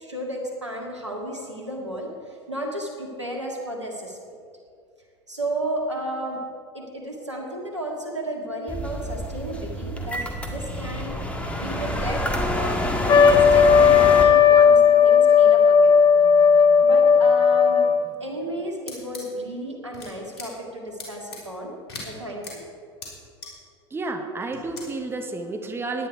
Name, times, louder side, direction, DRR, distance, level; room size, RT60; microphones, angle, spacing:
voice 1, 0.0-4.2 5.3-6.4 6.7-11.2 11.5-12.3 12.5-16.0 16.8-17.8 18.2-21.8 22.1-22.6, right 1 dB, 90° right, 0 dB, 2.1 m, -33 dB
sound 1, 8.7-14.2, left 1 dB, 10° left, 1.8 m, -27 dB
Trumpet, 13.1-18.1, left 6 dB, 30° left, 0.8 m, -15 dB
sound 2, 18.9-19.2 19.9-20.1 20.4-20.5 21.0-21.4 21.9-22.0 22.4-22.5 23.0-23.1 23.4-23.5 24.5-24.8, left 3 dB, 65° left, 3.9 m, -37 dB
voice 2, 23.9-26.1, right 3 dB, 15° right, 4 dB, 1.5 m, -31 dB
17.5 x 10.5 x 4.7 m, 2.3 s
figure-of-eight pair, 75°, 14 cm